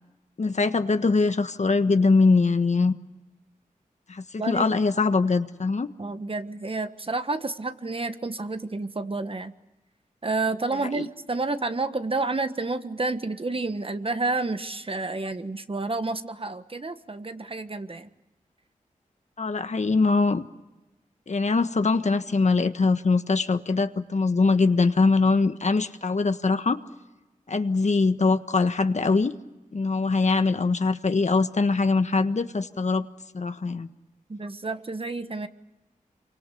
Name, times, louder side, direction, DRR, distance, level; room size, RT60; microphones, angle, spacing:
voice 1, 0.4-2.9 4.1-5.9 10.8-11.0 19.4-20.4 21.3-26.8 27.5-29.3 29.7-33.1 33.3-33.9, left 3 dB, 55° left, 9 dB, 1.4 m, -22 dB
voice 2, 6.0-9.5 10.2-18.1 34.3-35.5, right 3 dB, 40° right, 10 dB, 1.5 m, -30 dB
28.0 x 24.5 x 7.0 m, 1.0 s
cardioid pair, 50°, 14 cm